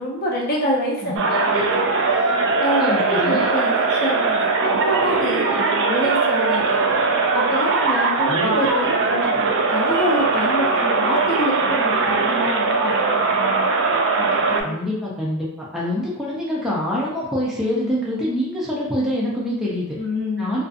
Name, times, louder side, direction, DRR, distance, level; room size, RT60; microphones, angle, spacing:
voice 1, 0.0-1.8 2.6-6.8 7.3-13.7 14.2-14.7 20.0-20.6, left 1 dB, 45° left, -3 dB, 0.6 m, -26 dB
sound 1, 1.2-14.6, right 4 dB, 55° right, 0.3 m, -20 dB
voice 2, 2.8-3.5 8.3-8.5 14.6-20.0 20.4-20.6, left 1 dB, ahead, -7 dB, 0.5 m, -25 dB
2.5 x 2.4 x 2.4 m, 0.86 s
head